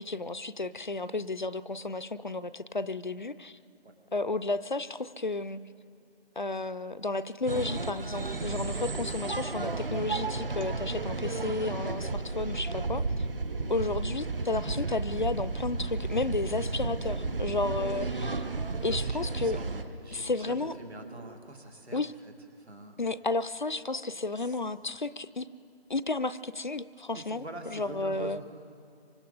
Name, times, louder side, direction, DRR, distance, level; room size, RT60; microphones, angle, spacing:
voice 1, 0.0-3.6 4.1-5.6 6.4-13.3 13.7-18.5 18.8-19.6 20.1-20.7 21.9-22.1 23.0-25.5 25.9-27.4 27.7-28.4, left 3 dB, 50° left, 14 dB, 0.4 m, -32 dB
sound 1, 7.5-19.8, right 3 dB, 60° right, 1.2 m, -33 dB
sound 2, 9.9-21.4, right 1 dB, 30° right, 0.8 m, -49 dB
voice 2, 18.8-19.7 20.0-23.0 24.3-24.6 27.1-28.4, right 2 dB, 85° right, 3 dB, 2.4 m, -45 dB
27.5 x 24.5 x 4.0 m, 2.5 s
figure-of-eight pair, 160°, 32 cm